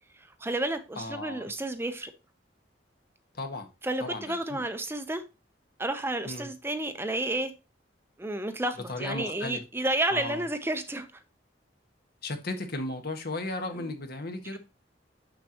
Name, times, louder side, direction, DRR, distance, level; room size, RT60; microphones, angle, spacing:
voice 1, 0.4-2.1 3.8-5.2 5.8-7.5 8.2-11.1, right 1 dB, 15° right, 0.7 m, -31 dB
voice 2, 1.0-1.5 3.3-3.7 4.0-4.6 6.2-6.5 8.9-9.6 10.1-10.4 12.2-14.6, left 2 dB, 60° left, 1.4 m, -35 dB
6.7 x 6.7 x 2.9 m
head